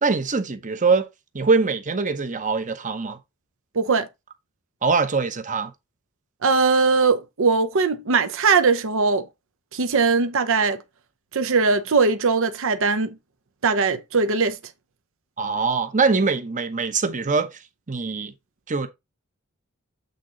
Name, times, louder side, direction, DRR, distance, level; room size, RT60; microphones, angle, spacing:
voice 1, 0.0-1.1 1.3-3.2 4.8-5.7 15.4-17.6 17.9-18.3 18.7-18.9, right 4 dB, 35° right, 1.0 m, -23 dB
voice 2, 3.7-4.1 6.4-9.2 9.7-10.8 11.3-13.1 13.6-14.6, right 4 dB, 65° right, 0.7 m, -20 dB
8.1 x 3.8 x 4.0 m
head